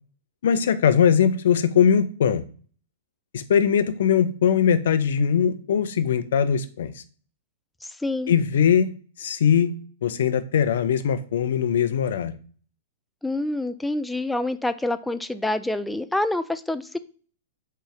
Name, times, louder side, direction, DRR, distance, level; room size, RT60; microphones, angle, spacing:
voice 1, 0.4-2.4 3.3-7.0 8.3-8.9 9.2-9.7 10.0-12.4, left 8 dB, 65° left, 12 dB, 0.4 m, -21 dB
voice 2, 8.0-8.3 13.2-17.0, left 2 dB, 5° left, 12 dB, 0.3 m, -27 dB
3.9 x 3.2 x 3.7 m, 0.42 s
hypercardioid pair, 110°, 0 cm